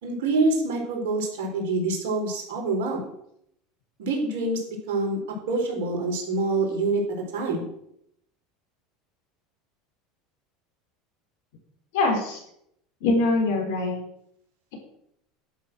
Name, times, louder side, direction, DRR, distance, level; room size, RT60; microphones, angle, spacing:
voice 1, 0.0-3.0 4.0-7.0 7.3-7.6, right 2 dB, 75° right, 1 dB, 4.2 m, -26 dB
voice 2, 11.9-12.4 13.0-14.0, left 2 dB, 75° left, 2 dB, 4.4 m, -23 dB
11.5 x 6.3 x 7.7 m, 0.74 s
hypercardioid pair, 90°, 0 cm